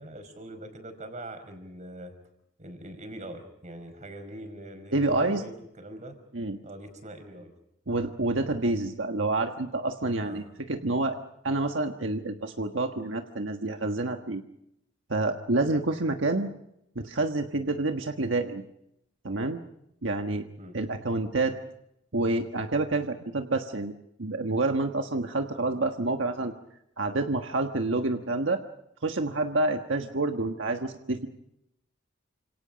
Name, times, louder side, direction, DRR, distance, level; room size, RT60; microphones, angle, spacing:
voice 1, 0.0-2.1 2.6-6.2 6.6-7.5 10.2-10.4 20.6-20.8, right 1 dB, 40° right, 7 dB, 5.2 m, -42 dB
voice 2, 4.9-5.4 6.3-6.6 7.9-11.2 11.4-14.4 15.1-16.5 16.9-18.6 19.2-19.6 20.0-20.4 20.7-21.6 22.1-23.9 24.2-26.5 27.0-28.6 29.0-31.3, right 2 dB, 80° right, 5 dB, 1.4 m, -28 dB
29.5 x 27.0 x 5.2 m, 0.80 s
head